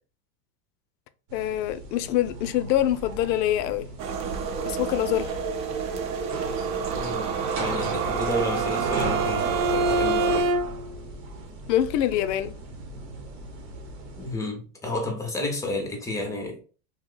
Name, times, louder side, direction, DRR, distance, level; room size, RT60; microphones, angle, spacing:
voice 1, 1.3-3.9 4.7-5.3 11.7-12.5, left 12 dB, 80° left, 0.6 m, -25 dB
sound 1, 1.3-14.3, right 3 dB, 70° right, 1.0 m, -38 dB
sound 2, 4.0-10.4, right 6 dB, 50° right, 0.6 m, -29 dB
voice 2, 6.9-7.3 7.6-10.6 14.2-16.6, left 1 dB, 5° left, 0.4 m, -31 dB
Bowed string instrument, 7.6-11.0, right 2 dB, 90° right, 0.6 m, -27 dB
2.8 x 2.1 x 3.7 m
supercardioid pair, 130°, 49 cm